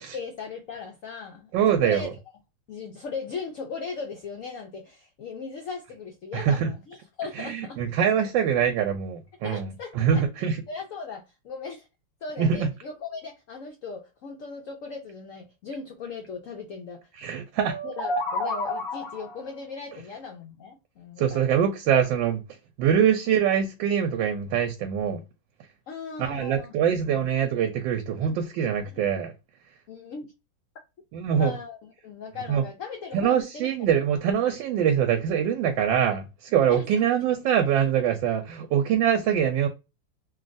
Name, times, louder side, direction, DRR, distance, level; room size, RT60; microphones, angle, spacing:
voice 1, 0.1-2.1 2.7-7.8 9.4-10.2 10.7-11.9 12.2-17.1 17.8-21.7 25.9-27.3 28.2-28.4 28.9-29.0 29.9-30.3 31.3-33.7 36.7-36.9, left 5 dB, 90° left, 0.7 m, -38 dB
voice 2, 1.5-2.1 6.3-6.7 7.4-10.6 12.4-12.7 17.2-17.8 21.2-22.4 22.8-25.2 26.2-29.3 31.1-31.5 32.5-32.6 33.1-39.7, right 8 dB, 90° right, 1.3 m, -24 dB
sound 1, 17.6-19.4, left 2 dB, 55° left, 1.3 m, -30 dB
3.2 x 2.3 x 2.5 m
omnidirectional pair, 2.0 m